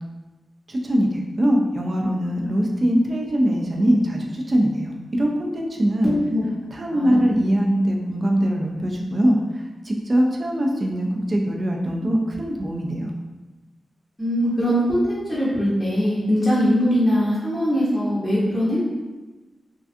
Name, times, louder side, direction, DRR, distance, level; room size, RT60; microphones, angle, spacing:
voice 1, 0.7-6.1 6.7-13.1, equal, 40° right, 0 dB, 0.4 m, -22 dB
voice 2, 6.0-6.4 6.9-7.3 14.2-18.8, equal, 15° left, -9 dB, 0.7 m, -21 dB
2.4 x 2.3 x 2.5 m, 1.2 s
wide cardioid pair, 95°, 0 cm